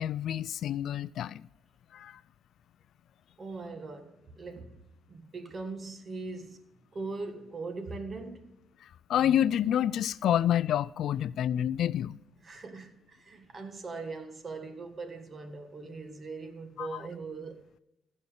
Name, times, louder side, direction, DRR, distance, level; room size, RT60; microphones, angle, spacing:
voice 1, 0.0-1.5 1.9-2.2 9.1-12.2 16.8-17.0, left 10 dB, 70° left, 0.3 m, -28 dB
voice 2, 3.4-4.8 5.1-8.6 12.4-17.6, right 3 dB, 40° right, 1.5 m, -41 dB
15.0 x 5.5 x 5.0 m
cardioid pair, 90°, 0 cm